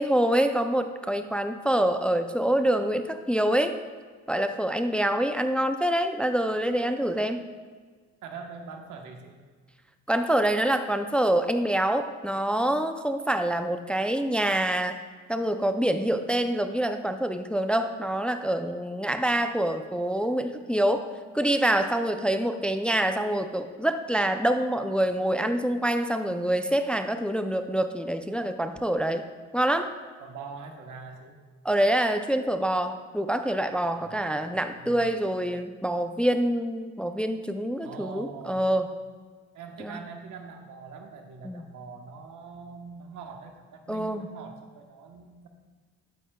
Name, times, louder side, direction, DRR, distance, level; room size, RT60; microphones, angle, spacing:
voice 1, 0.0-3.8 4.3-7.4 10.1-15.0 15.3-21.1 21.3-29.3 29.5-29.9 31.6-38.9 39.8-40.0 41.4-41.6 43.9-44.3, right 1 dB, 5° left, 8 dB, 0.4 m, -26 dB
voice 2, 8.2-9.4 30.2-31.4 33.9-35.2 37.8-38.7 39.5-45.5, right 5 dB, 80° right, 4 dB, 1.2 m, -43 dB
11.5 x 9.3 x 2.3 m, 1.5 s
cardioid pair, 90°, 30 cm